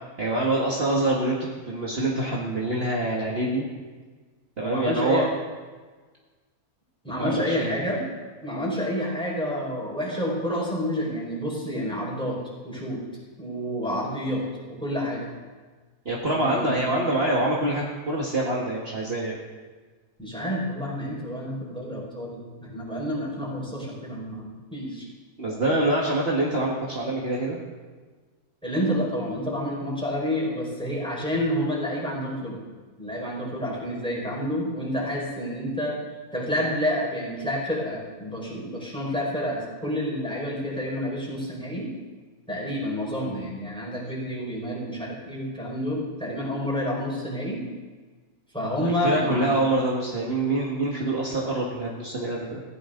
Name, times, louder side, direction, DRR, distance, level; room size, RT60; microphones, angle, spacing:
voice 1, 0.2-3.6 4.6-5.3 7.2-7.8 16.1-19.4 25.4-27.6 48.8-52.6, right 1 dB, 40° right, -4 dB, 2.0 m, -25 dB
voice 2, 4.6-5.3 7.0-8.0 8.4-12.4 12.6-13.0 13.4-14.4 14.7-15.3 16.3-16.8 20.2-25.0 28.6-32.6 33.0-36.0 36.3-41.8 42.5-47.6 48.5-49.6, equal, 5° left, -4 dB, 5.3 m, -29 dB
19.0 x 16.0 x 3.9 m, 1.4 s
omnidirectional pair, 1.7 m